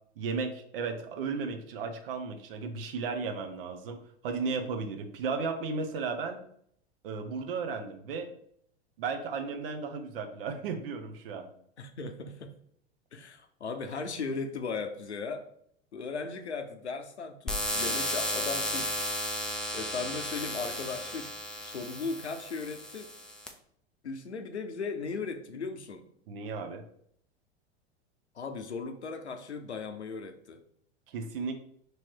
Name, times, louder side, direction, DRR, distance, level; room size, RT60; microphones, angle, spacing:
voice 1, 0.2-4.0 4.2-6.4 7.0-8.3 9.0-11.5 26.3-26.8 31.1-31.5, right 4 dB, 55° right, 6 dB, 0.7 m, -34 dB
voice 2, 11.8-12.5 13.1-15.5 15.9-19.0 19.7-21.3 21.6-23.1 24.0-26.0 28.4-30.6, left 4 dB, 85° left, 7 dB, 0.6 m, -37 dB
sound 1, 17.5-23.5, left 1 dB, ahead, 0.4 m, -34 dB
3.1 x 2.9 x 4.5 m, 0.67 s
figure-of-eight pair, 85°, 33 cm